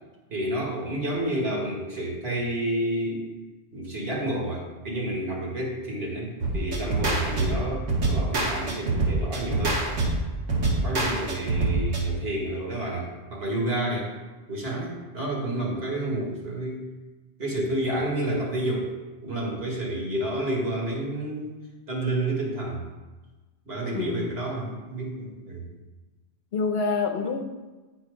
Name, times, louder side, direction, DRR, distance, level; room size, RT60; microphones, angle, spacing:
voice 1, 0.3-3.2 3.7-9.8 10.6-14.1 14.5-16.9 17.4-18.9 19.2-21.5 21.9-22.8 23.7-25.7, right 1 dB, 60° right, -3 dB, 2.1 m, -30 dB
sound 1, 6.4-12.0, right 2 dB, 80° right, 1.7 m, -25 dB
voice 2, 23.9-24.3 26.5-27.4, left 4 dB, 65° left, 5 dB, 0.9 m, -27 dB
9.4 x 4.5 x 5.0 m, 1.2 s
omnidirectional pair, 1.2 m